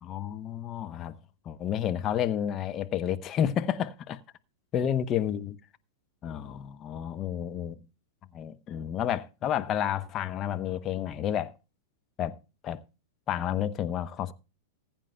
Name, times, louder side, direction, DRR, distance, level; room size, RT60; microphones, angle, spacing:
voice 1, 0.0-1.2 1.5-4.2 4.7-5.6 6.2-7.8 8.3-11.5 12.2-12.4 12.6-12.8 13.3-14.3, left 9 dB, 30° left, 0.8 m, -30 dB
20.0 x 9.0 x 2.2 m
figure-of-eight pair, 100°, 0 cm